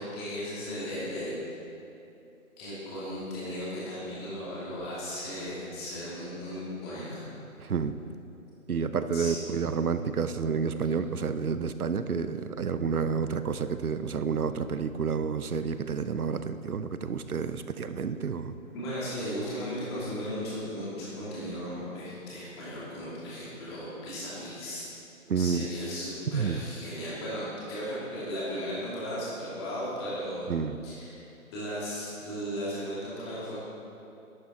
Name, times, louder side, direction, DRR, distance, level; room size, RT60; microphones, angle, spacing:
voice 1, 0.0-1.4 2.6-7.2 9.1-9.3 18.7-24.9 25.4-30.5 30.8-31.2 31.5-33.6, equal, 20° left, -8 dB, 2.5 m, -36 dB
voice 2, 7.6-7.9 8.7-18.5 25.3-25.7 26.3-26.6 30.5-30.8, right 6 dB, 80° right, 11 dB, 0.7 m, -30 dB
11.5 x 8.5 x 4.3 m, 2.8 s
figure-of-eight pair, 155°, 43 cm